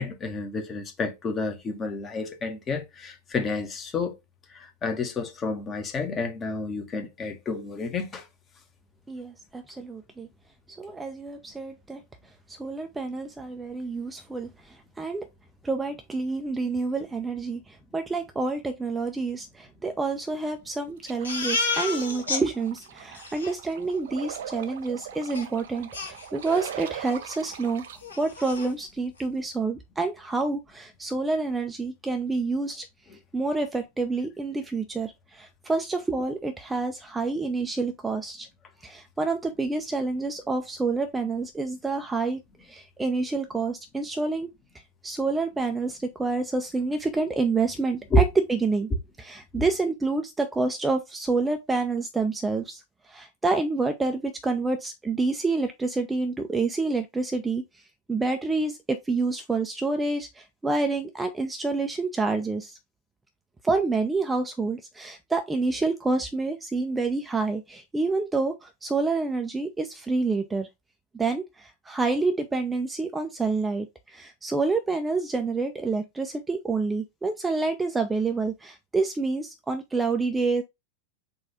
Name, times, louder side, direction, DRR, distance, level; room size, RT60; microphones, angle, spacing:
voice 1, 0.0-4.2 4.5-8.3 33.1-33.2 48.1-48.3 49.5-49.6, left 2 dB, 25° left, 1.0 m, -29 dB
voice 2, 9.1-10.3 10.8-12.0 12.6-15.2 15.6-27.8 28.2-32.9 33.3-38.5 38.8-42.4 42.7-44.5 45.0-48.9 49.2-52.8 53.1-57.6 58.1-58.8 59.1-62.8 63.6-70.7 71.1-80.6, right 3 dB, 10° right, 0.5 m, -28 dB
sound 1, 21.0-28.0, right 9 dB, 60° right, 0.5 m, -40 dB
Crying sobbing, 21.2-22.4 22.8-22.9 23.1-23.5 25.3-25.4 25.9-26.7 27.1-27.2 27.6-27.7 28.0-28.7, left 3 dB, 75° left, 1.7 m, -30 dB
4.0 x 2.5 x 4.2 m
figure-of-eight pair, 90°, 0 cm